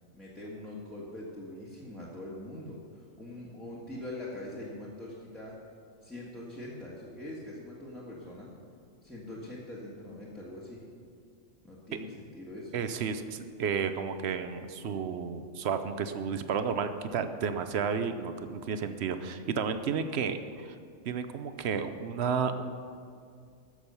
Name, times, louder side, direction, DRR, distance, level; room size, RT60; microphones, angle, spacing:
voice 1, 0.1-5.6 6.0-8.5 9.0-10.8 11.6-12.8, left 1 dB, ahead, -7 dB, 1.5 m, -43 dB
voice 2, 12.7-20.7 21.0-22.9, right 6 dB, 60° right, 9 dB, 0.9 m, -32 dB
13.5 x 6.4 x 6.9 m, 2.2 s
omnidirectional pair, 1.3 m